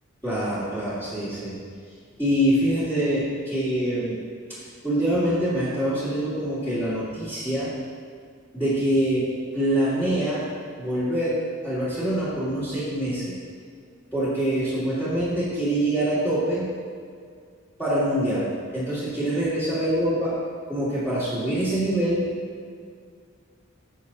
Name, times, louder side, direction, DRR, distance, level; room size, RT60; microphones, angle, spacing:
voice 1, 0.2-1.6 2.2-4.2 4.5-7.7 8.5-9.3 9.5-10.5 10.8-13.4 14.1-16.7 17.8-20.4 20.7-22.3, right 1 dB, 10° left, -14 dB, 2.3 m, -25 dB
16.0 x 6.3 x 2.8 m, 2.1 s
head